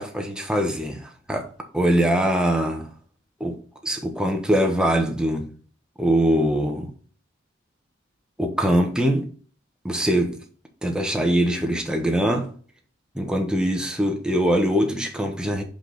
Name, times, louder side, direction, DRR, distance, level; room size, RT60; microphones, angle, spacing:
voice 1, 0.0-1.5 1.7-2.9 3.4-3.6 3.8-5.5 6.0-6.9 8.4-9.3 9.8-10.4 10.8-12.5 13.1-15.6, equal, 5° right, 1.1 m, -22 dB
6.0 x 5.3 x 3.9 m
head